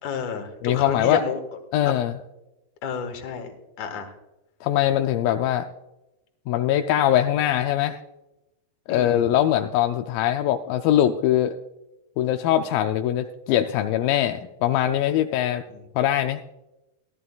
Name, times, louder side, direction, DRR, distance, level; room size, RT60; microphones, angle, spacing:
voice 1, 0.0-1.4 2.8-3.5 3.8-4.1 8.9-9.3 15.4-15.8, left 6 dB, 60° left, 5 dB, 2.4 m, -31 dB
voice 2, 0.6-1.2 1.7-2.1 4.6-5.7 6.5-8.0 8.9-11.6 12.2-15.6 16.0-16.4, left 11 dB, 85° left, 6 dB, 2.1 m, -22 dB
16.5 x 12.5 x 2.3 m, 0.95 s
omnidirectional pair, 4.5 m